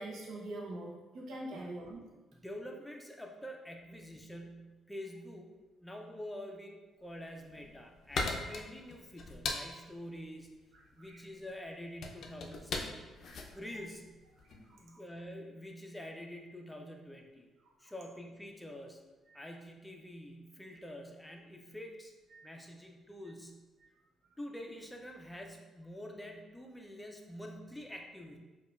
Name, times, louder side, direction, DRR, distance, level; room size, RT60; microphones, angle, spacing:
voice 1, 0.0-2.0 11.0-11.2 13.4-13.5 14.7-15.0 22.3-22.5, right 1 dB, 70° right, -3 dB, 0.6 m, -43 dB
voice 2, 2.3-5.5 5.8-10.5 10.9-13.1 13.5-14.2 14.8-17.5 17.8-19.0 19.3-22.1 22.4-23.6 24.4-28.4, equal, 10° left, 2 dB, 0.5 m, -46 dB
sound 1, 7.3-14.7, left 3 dB, 65° left, 0.4 m, -40 dB
4.7 x 2.3 x 2.4 m, 1.2 s
cardioid pair, 90°, 0 cm